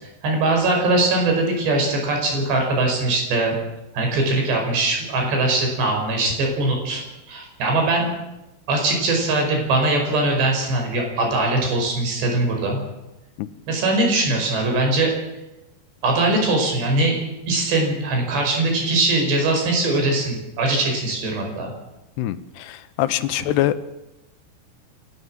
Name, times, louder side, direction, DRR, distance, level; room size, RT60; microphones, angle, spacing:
voice 1, 0.0-3.6 3.9-7.0 7.3-8.1 8.7-12.8 13.7-15.1 16.0-17.2 17.5-21.7, right 2 dB, 85° right, 2 dB, 7.4 m, -21 dB
voice 2, 22.2-23.7, left 14 dB, 80° left, 13 dB, 3.0 m, -23 dB
29.0 x 13.0 x 7.5 m, 0.97 s
omnidirectional pair, 4.8 m